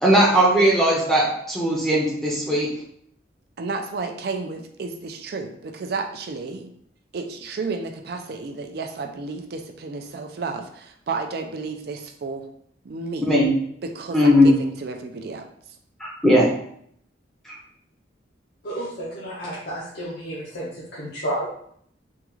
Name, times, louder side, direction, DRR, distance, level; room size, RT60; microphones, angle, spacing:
voice 1, 0.0-2.7 13.3-13.5 14.1-14.6 16.0-16.5 17.5-17.6, equal, ahead, -5 dB, 0.6 m, -18 dB
voice 2, 3.6-6.7 7.1-12.5 12.8-13.3 13.8-15.5, right 4 dB, 55° right, 5 dB, 0.4 m, -32 dB
voice 3, 18.6-21.5, right 1 dB, 60° left, -7 dB, 0.7 m, -31 dB
3.5 x 2.4 x 3.0 m, 0.67 s
head